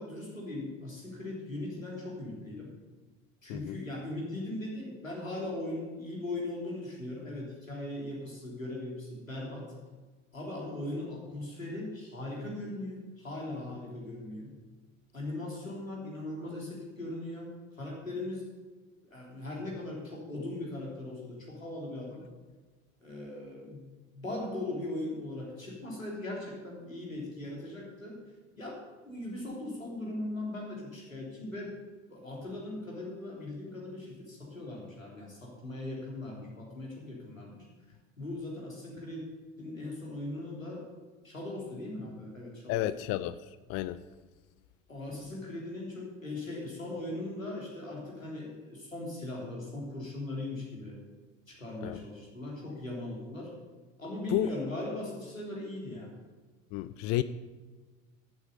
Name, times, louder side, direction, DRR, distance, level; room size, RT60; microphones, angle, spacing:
voice 1, 0.0-2.7 3.4-9.7 10.3-14.5 15.1-18.5 19.1-22.2 23.0-23.8 24.1-28.2 28.6-28.8 29.1-31.7 32.1-37.7 38.2-39.3 39.6-40.9 41.2-42.8 44.9-51.0 51.5-53.5 54.0-56.1, left 2 dB, 85° left, -3 dB, 3.5 m, -39 dB
voice 2, 42.7-43.3 43.7-44.0 51.8-52.0 54.3-54.5 56.7-57.2, left 15 dB, 40° left, 14 dB, 0.5 m, -31 dB
14.0 x 7.9 x 6.8 m, 1.3 s
figure-of-eight pair, 65°, 39 cm